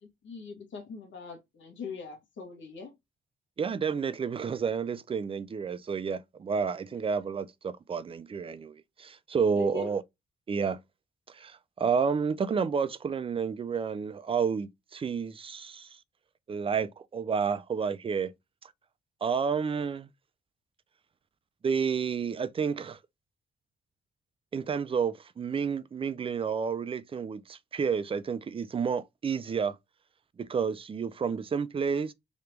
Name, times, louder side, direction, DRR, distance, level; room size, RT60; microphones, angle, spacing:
voice 1, 0.0-2.9 9.5-9.9, left 5 dB, 65° left, 1.4 m, -41 dB
voice 2, 3.6-10.0 10.5-10.8 11.3-16.0 16.5-18.3 18.6-18.7 19.2-20.1 21.6-23.0 24.5-29.8 30.4-32.1, right 6 dB, 25° right, 0.4 m, -30 dB
3.2 x 2.9 x 3.2 m
cardioid pair, 95°, 20 cm